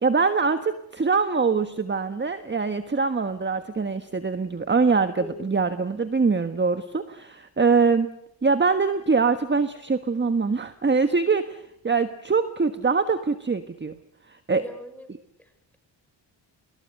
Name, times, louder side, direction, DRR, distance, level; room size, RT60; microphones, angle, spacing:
voice 1, 0.0-8.1 8.4-13.9 14.3-14.6, right 4 dB, 25° right, 9 dB, 1.4 m, -23 dB
voice 2, 14.6-15.1 15.4-15.8, left 1 dB, 5° left, 7 dB, 6.5 m, -41 dB
27.0 x 22.0 x 6.7 m, 0.76 s
cardioid pair, 75°, 44 cm